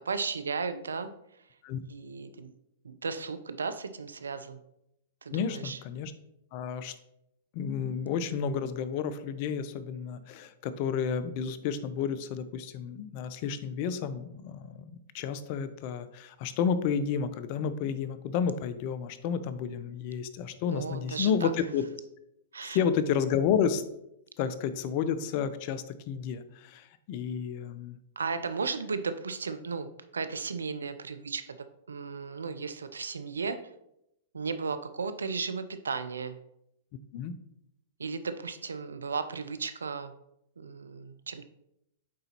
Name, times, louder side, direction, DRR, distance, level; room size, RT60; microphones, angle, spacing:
voice 1, 0.1-1.1 1.9-2.5 2.8-4.6 5.2-5.8 20.7-21.5 22.5-22.8 28.2-29.9 30.1-31.6 31.9-33.6 34.3-36.4 38.0-40.1 40.6-41.5, right 5 dB, 85° right, 11 dB, 0.5 m, -35 dB
voice 2, 5.3-6.1 6.5-6.9 7.5-21.8 22.6-23.8 24.4-28.0 37.1-37.3, left 7 dB, 50° left, 13 dB, 0.5 m, -31 dB
8.5 x 3.9 x 2.9 m, 0.81 s
hypercardioid pair, 115°, 0 cm